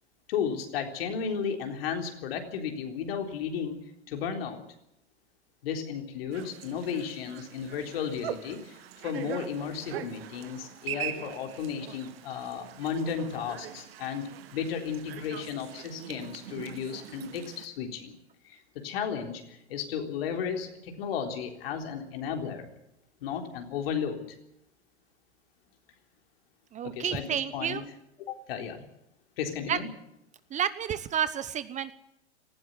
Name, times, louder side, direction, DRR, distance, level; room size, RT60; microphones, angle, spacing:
voice 1, 0.3-4.6 5.6-18.2 18.4-22.8 23.2-24.2 26.8-27.8 28.3-28.8 29.4-29.9, left 7 dB, 60° left, 4 dB, 3.8 m, -34 dB
sound 1, 6.3-17.7, right 10 dB, 60° right, 2.0 m, -42 dB
voice 2, 26.7-27.8 29.7-29.8 30.5-31.9, right 9 dB, 20° right, 14 dB, 0.9 m, -30 dB
18.5 x 15.5 x 9.7 m, 0.81 s
hypercardioid pair, 105°, 34 cm